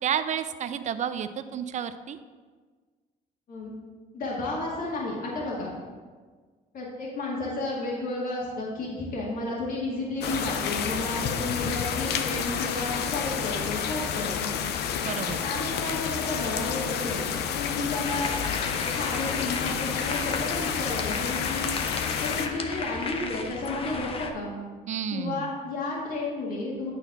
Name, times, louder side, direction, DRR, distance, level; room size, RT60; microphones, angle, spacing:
voice 1, 0.0-2.2 15.0-15.4 24.9-25.5, right 8 dB, 45° right, 11 dB, 0.5 m, -31 dB
voice 2, 4.1-5.7 6.7-14.5 15.2-18.3 18.7-21.7 22.2-24.6 25.1-26.9, left 2 dB, 55° left, -4 dB, 2.0 m, -32 dB
sound 1, 10.2-22.5, left 8 dB, 75° left, 0.6 m, -30 dB
sound 2, 18.0-24.3, left 4 dB, 35° left, 0.8 m, -34 dB
8.9 x 4.0 x 5.9 m, 1.5 s
cardioid pair, 110°, 17 cm